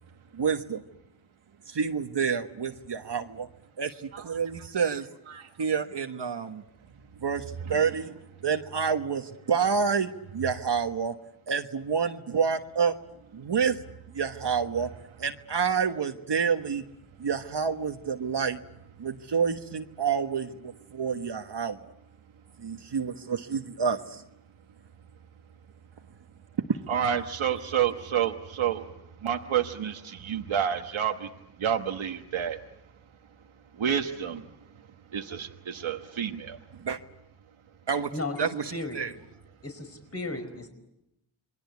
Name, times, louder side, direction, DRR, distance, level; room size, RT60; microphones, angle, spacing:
voice 1, 0.3-0.8 1.7-3.5 3.8-5.1 5.6-6.6 7.2-8.1 8.4-11.1 11.5-12.9 13.3-13.8 14.1-14.9 15.2-16.8 17.2-18.6 19.0-21.8 22.6-24.2 36.8-37.0 37.9-38.1 38.4-39.1, right 6 dB, 60° right, 5 dB, 1.3 m, -28 dB
voice 2, 26.9-28.9 29.2-31.3 31.6-32.6 33.7-34.5 35.1-36.6, right 9 dB, 85° right, 4 dB, 1.3 m, -29 dB
voice 3, 38.7-39.0 39.6-40.7, left 2 dB, 30° left, 7 dB, 5.0 m, -34 dB
28.0 x 22.5 x 8.3 m, 0.86 s
cardioid pair, 60°, 46 cm